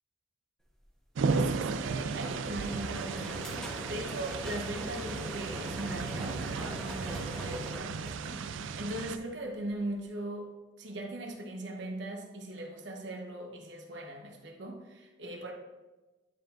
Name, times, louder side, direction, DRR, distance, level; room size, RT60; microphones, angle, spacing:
sound 1, 1.2-9.2, right 5 dB, 90° right, 0.4 m, -35 dB
voice 1, 1.3-10.5 10.8-15.5, right 1 dB, 70° right, 1 dB, 1.1 m, -39 dB
sound 2, 1.5-8.8, equal, 5° left, 0.9 m, -42 dB
10.0 x 4.9 x 2.5 m, 1.1 s
head